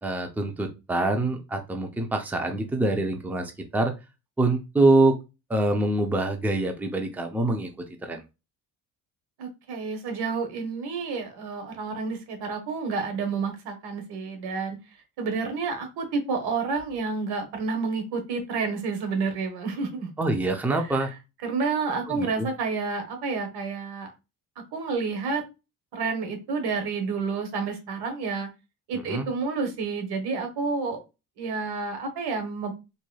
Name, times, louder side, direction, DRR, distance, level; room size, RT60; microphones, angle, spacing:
voice 1, 0.0-3.9 4.4-5.2 5.5-7.7 8.0-8.2 20.2-21.1 22.1-22.5 29.1-29.3, right 2 dB, 5° right, 0.5 m, -25 dB
voice 2, 9.4-14.8 15.2-20.1 20.7-21.1 21.4-24.1 24.7-25.4 25.9-28.5 28.9-31.0 31.4-32.7, right 4 dB, 85° right, 1.3 m, -29 dB
4.0 x 3.1 x 2.3 m
cardioid pair, 125°, 38 cm